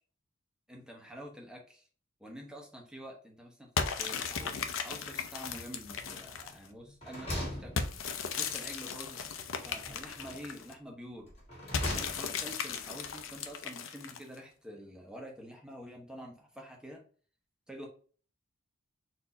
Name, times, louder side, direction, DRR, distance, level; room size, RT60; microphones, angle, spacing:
voice 1, 0.7-1.9 2.2-7.9 8.4-9.2 9.6-11.4 11.9-17.0 17.7-17.9, equal, 5° right, 0 dB, 1.0 m, -47 dB
sound 1, 3.8-6.7 7.8-10.7 11.7-14.4, left 6 dB, 80° left, 0.6 m, -36 dB
sound 2, 6.0-6.5 6.8-8.4 9.7-10.6 11.3-12.5, left 1 dB, 30° left, 1.9 m, -41 dB
4.4 x 2.8 x 4.0 m, 0.42 s
head